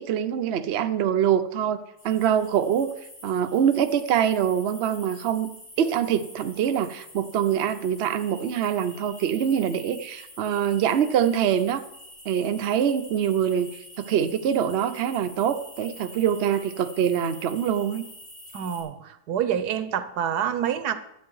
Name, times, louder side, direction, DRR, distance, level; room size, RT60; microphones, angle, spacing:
voice 1, 0.0-2.9 3.2-5.5 5.8-11.8 12.3-18.1, right 9 dB, 55° right, 8 dB, 0.8 m, -24 dB
sound 1, 2.0-18.8, left 1 dB, 65° left, 3.5 m, -46 dB
voice 2, 18.5-21.0, right 9 dB, 85° right, 12 dB, 1.4 m, -27 dB
12.5 x 8.2 x 4.7 m, 0.80 s
omnidirectional pair, 1.7 m